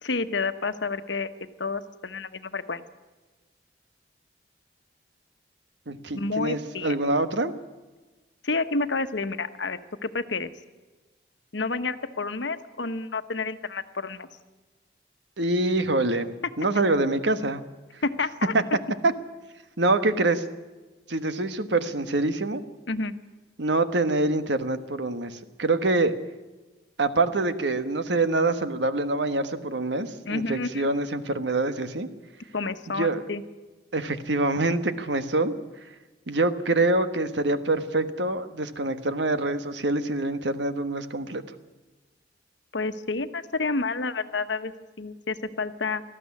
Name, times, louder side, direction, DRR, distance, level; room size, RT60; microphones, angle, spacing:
voice 1, 0.0-1.3 1.6-2.8 6.1-7.0 8.4-10.5 11.5-14.3 18.0-18.5 22.9-23.1 30.2-30.9 32.5-33.4 42.7-44.7 45.0-46.0, left 3 dB, 85° left, 10 dB, 1.2 m, -29 dB
voice 2, 5.9-7.5 15.4-17.6 18.5-18.6 19.0-19.1 19.8-20.4 21.1-22.6 23.6-26.1 27.0-32.1 33.0-33.2 33.9-35.5 36.3-41.4, right 2 dB, 80° right, 10 dB, 1.4 m, -25 dB
19.5 x 14.0 x 9.7 m, 1.2 s
head